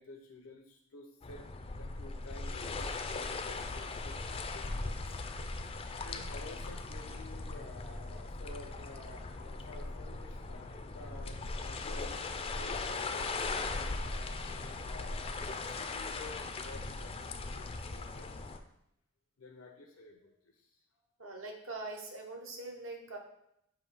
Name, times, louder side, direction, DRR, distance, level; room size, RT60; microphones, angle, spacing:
voice 1, 0.0-1.4 1.8-18.6 19.4-20.8, left 2 dB, 85° left, 0 dB, 0.8 m, -52 dB
sound 1, 1.2-18.6, left 3 dB, 30° left, 0.4 m, -39 dB
voice 2, 21.2-23.2, right 2 dB, 70° right, 2 dB, 1.1 m, -43 dB
6.9 x 2.7 x 5.3 m, 0.77 s
head